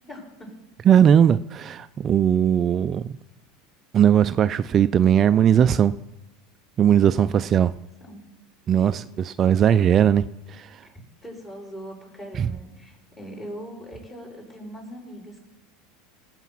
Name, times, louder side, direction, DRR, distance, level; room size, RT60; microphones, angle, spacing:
voice 1, 0.1-0.5 7.4-7.5 7.8-8.2 8.8-9.0 10.8-10.9 11.2-15.4, equal, 25° left, 5.4 m, -41 dB
voice 2, 0.9-3.1 3.9-5.9 6.8-7.7 8.7-10.8 12.4-12.5, right 9 dB, 35° right, 0.4 m, -19 dB
19.5 x 7.2 x 6.0 m
hypercardioid pair, 85°, 0 cm